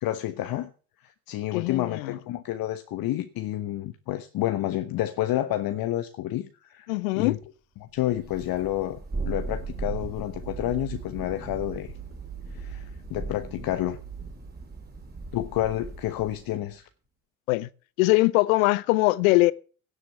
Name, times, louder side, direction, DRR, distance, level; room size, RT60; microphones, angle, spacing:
voice 1, 0.0-0.7 1.3-6.9 7.1-7.4 7.8-9.0 9.3-11.9 12.5-14.0 15.3-16.9, left 14 dB, 55° left, 1.2 m, -29 dB
voice 2, 1.5-2.2 6.9-7.4 17.5-17.7 18.0-19.5, left 21 dB, 75° left, 0.8 m, -22 dB
Thunder, 8.1-16.6, right 3 dB, 20° right, 4.2 m, -38 dB
sound 1, 10.4-15.6, right 12 dB, 45° right, 2.8 m, -43 dB
16.5 x 7.6 x 5.8 m
hypercardioid pair, 55°, 42 cm